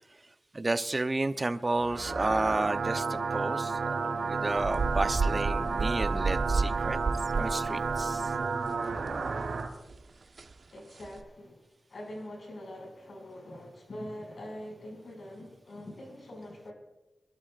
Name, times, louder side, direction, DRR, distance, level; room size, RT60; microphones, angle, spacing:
voice 1, 0.5-7.0 7.3-8.3, right 2 dB, 30° right, 9 dB, 0.8 m, -31 dB
sound 1, 1.7-9.7, right 4 dB, 80° right, 3.2 m, -32 dB
sound 2, 4.5-9.1 9.4-9.5 9.9-10.0 10.4-10.5 11.0-11.2, right 4 dB, 60° right, 1.1 m, -31 dB
voice 2, 10.7-11.6 11.9-16.7, left 1 dB, 65° left, 1 dB, 6.1 m, -43 dB
27.0 x 12.5 x 2.5 m, 1.1 s
wide cardioid pair, 75°, 0 cm